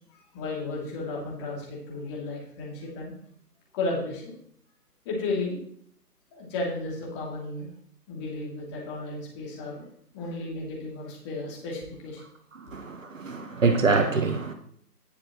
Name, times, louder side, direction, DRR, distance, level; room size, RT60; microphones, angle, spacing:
voice 1, 0.3-3.1 3.7-4.3 5.0-5.6 6.3-7.7 8.1-9.8 10.1-12.2, left 2 dB, 15° left, 2.8 m, -33 dB
voice 2, 12.7-14.5, right 4 dB, 50° right, 1.3 m, -25 dB
18.5 x 7.1 x 3.1 m
figure-of-eight pair, 150°, 48 cm